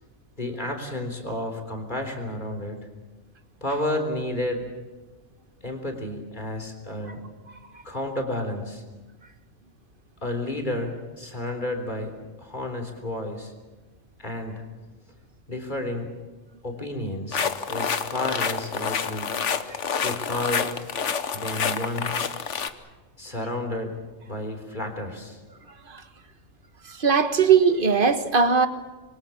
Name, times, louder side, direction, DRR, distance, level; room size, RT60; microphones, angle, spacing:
voice 1, 0.4-2.8 3.6-4.7 5.6-7.2 7.8-8.8 10.2-12.1 12.4-13.5 14.2-14.6 15.5-16.1 16.6-19.4 20.0-20.7 21.3-22.1 23.2-23.9 24.3-25.4, left 1 dB, 35° left, 4 dB, 3.8 m, -31 dB
sound 1, 17.3-22.7, left 6 dB, 60° left, 1.4 m, -28 dB
voice 2, 26.9-28.7, right 6 dB, 40° right, 9 dB, 1.5 m, -19 dB
26.5 x 22.5 x 7.3 m, 1.2 s
omnidirectional pair, 1.4 m